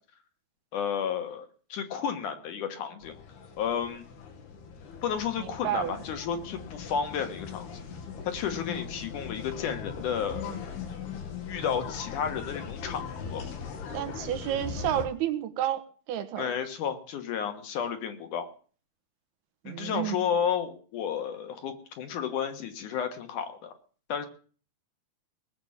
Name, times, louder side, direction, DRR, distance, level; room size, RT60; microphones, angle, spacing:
voice 1, 0.7-3.2 3.6-4.0 5.0-7.7 8.2-10.6 11.5-13.4 16.4-18.5 19.7-23.7 24.1-24.3, left 7 dB, 65° left, 8 dB, 2.6 m, -32 dB
sound 1, 3.0-15.1, left 6 dB, 85° left, 4.2 m, -40 dB
voice 2, 5.4-6.0 13.9-16.5 19.6-20.2, right 11 dB, 85° right, 10 dB, 3.2 m, -31 dB
20.0 x 7.1 x 7.2 m, 0.41 s
omnidirectional pair, 4.4 m